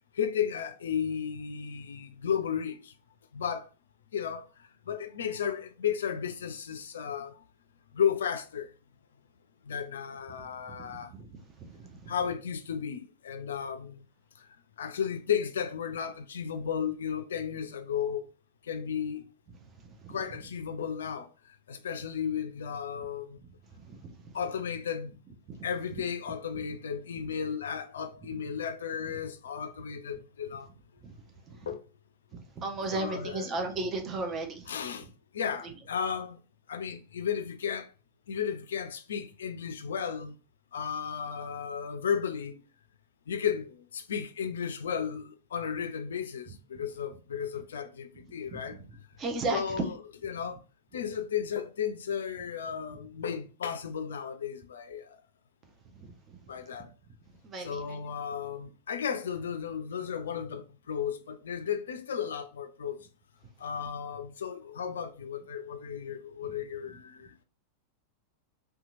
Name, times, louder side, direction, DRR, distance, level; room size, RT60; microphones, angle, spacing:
voice 1, 0.1-2.9 3.3-3.7 4.1-4.4 4.9-7.4 7.9-8.7 9.7-11.1 12.1-14.0 14.8-18.3 18.7-19.3 20.1-21.3 21.7-23.4 24.3-25.2 25.6-30.7 31.7-31.8 32.9-33.5 34.7-35.1 35.3-36.4 36.7-37.9 38.3-40.4 40.7-42.6 43.3-48.8 49.5-50.6 50.9-55.2 56.5-56.9 57.6-63.0 63.6-67.3, left 7 dB, 65° left, 0.3 m, -34 dB
voice 2, 10.8-12.1 19.8-20.2 23.8-24.2 25.6-25.7 25.9-26.0 31.0-31.1 31.5-31.7 32.3-34.7 48.5-48.8 49.2-49.9 56.0-56.4 57.4-58.0, right 3 dB, 25° right, 0.6 m, -36 dB
2.8 x 2.3 x 2.5 m
figure-of-eight pair, 90°, 0 cm